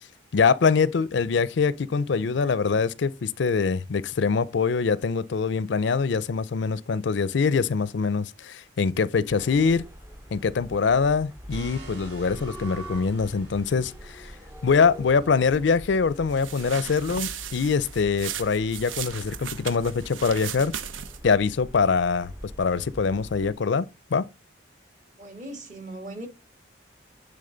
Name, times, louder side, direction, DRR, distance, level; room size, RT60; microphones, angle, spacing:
voice 1, 0.3-9.8 10.3-14.3 14.6-20.7 21.2-22.3 22.6-23.8 24.1-24.2, left 5 dB, 70° left, 0.4 m, -24 dB
sound 1, 9.3-23.5, equal, 15° right, 0.5 m, -43 dB
sound 2, 11.5-18.9, right 3 dB, 55° right, 3.1 m, -51 dB
sound 3, 16.3-21.3, right 9 dB, 85° right, 0.7 m, -36 dB
voice 2, 25.2-26.3, right 1 dB, 40° right, 1.7 m, -39 dB
10.0 x 3.7 x 3.9 m
head